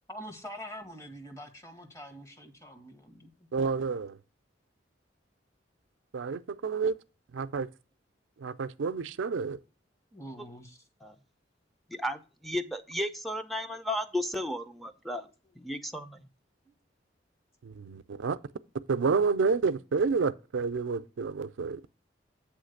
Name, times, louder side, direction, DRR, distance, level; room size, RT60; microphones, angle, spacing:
voice 1, 0.1-3.3 10.1-10.8, equal, 15° left, 1.1 m, -45 dB
voice 2, 3.5-4.2 6.1-7.0 7.3-7.7 8.4-9.6 17.6-18.4 18.9-21.8, right 5 dB, 85° right, 0.4 m, -29 dB
voice 3, 11.9-15.3 15.6-16.2, left 1 dB, ahead, 0.5 m, -34 dB
8.2 x 3.1 x 6.4 m
head